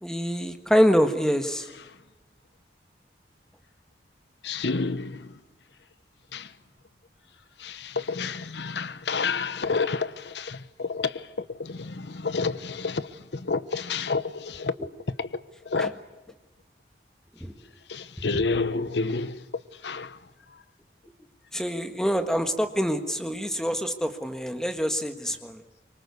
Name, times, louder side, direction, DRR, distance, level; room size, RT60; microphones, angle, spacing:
voice 1, 0.0-1.7 15.8-15.9 17.4-17.5 21.5-25.6, equal, 5° left, 1.5 m, -25 dB
voice 2, 4.4-5.4 6.3-6.5 7.6-14.9 15.2-15.9 17.9-19.5 19.7-20.2, left 4 dB, 85° left, 0.9 m, -30 dB
24.5 x 24.0 x 8.4 m
head